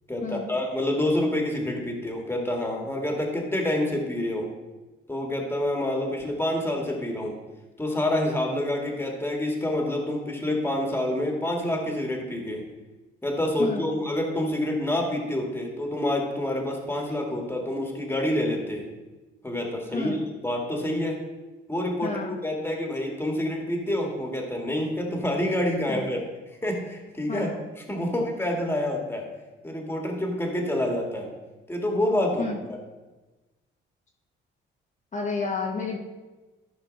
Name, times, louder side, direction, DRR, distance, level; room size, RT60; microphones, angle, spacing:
voice 1, 0.1-4.5 5.1-7.4 7.8-12.6 13.2-18.8 19.4-21.2 21.7-26.2 26.6-27.5 27.9-29.2 29.6-31.3 31.7-32.8, left 1 dB, 10° left, 1 dB, 2.2 m, -27 dB
voice 2, 22.0-22.4 25.9-26.1 27.3-27.6 32.4-32.6 35.1-36.0, left 4 dB, 40° left, -2 dB, 1.6 m, -30 dB
14.0 x 5.2 x 4.2 m, 1.2 s
cardioid pair, 90°, 20 cm